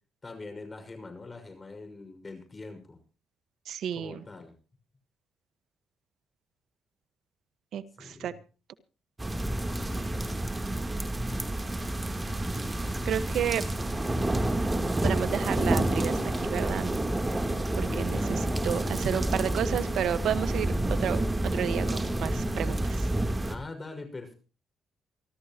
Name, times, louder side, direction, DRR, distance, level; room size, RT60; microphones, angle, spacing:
voice 1, 0.2-3.0 3.9-4.5 8.0-8.4 13.3-13.7 17.8-18.5 23.5-24.3, left 3 dB, 25° left, 7 dB, 5.9 m, -43 dB
voice 2, 3.7-4.2 7.7-8.3 13.0-13.6 15.0-17.0 17.8-23.0, right 9 dB, 70° right, 12 dB, 1.4 m, -31 dB
sound 1, 9.2-23.5, right 1 dB, 15° right, 3.2 m, -29 dB
28.5 x 13.0 x 3.0 m, 0.36 s
cardioid pair, 90°, 0 cm